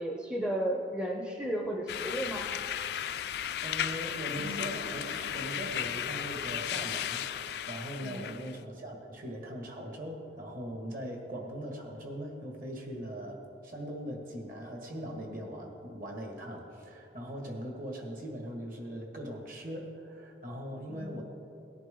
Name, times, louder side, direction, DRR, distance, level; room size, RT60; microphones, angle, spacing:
voice 1, 0.0-2.5 8.0-8.3 20.9-21.2, right 1 dB, 5° right, 1 dB, 0.6 m, -34 dB
sound 1, 1.6-12.8 13.1-13.2, equal, 70° right, 0.9 m, -51 dB
sound 2, 1.9-8.6, left 10 dB, 60° left, 0.3 m, -35 dB
voice 2, 3.6-21.2, equal, 50° right, 1 dB, 1.8 m, -40 dB
18.0 x 10.5 x 3.8 m, 2.9 s
head